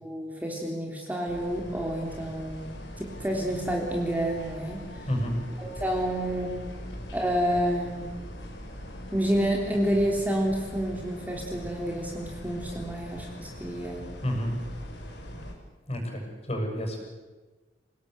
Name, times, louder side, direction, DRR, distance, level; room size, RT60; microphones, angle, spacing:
voice 1, 0.0-4.8 5.6-6.5 7.1-8.0 9.1-14.0, equal, 10° right, 0 dB, 3.4 m, -29 dB
sound 1, 1.3-15.5, equal, 85° left, 5.3 m, -42 dB
voice 2, 5.1-5.4 14.2-14.6 15.9-17.0, equal, 35° left, 2 dB, 7.2 m, -29 dB
27.5 x 19.5 x 8.2 m, 1.3 s
head